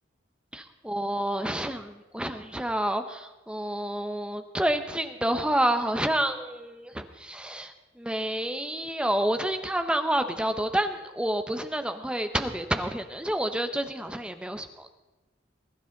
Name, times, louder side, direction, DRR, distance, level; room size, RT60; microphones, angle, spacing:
voice 1, 0.5-7.7 8.0-14.7, right 1 dB, 5° right, 8 dB, 0.7 m, -29 dB
21.0 x 12.0 x 3.8 m, 1.1 s
head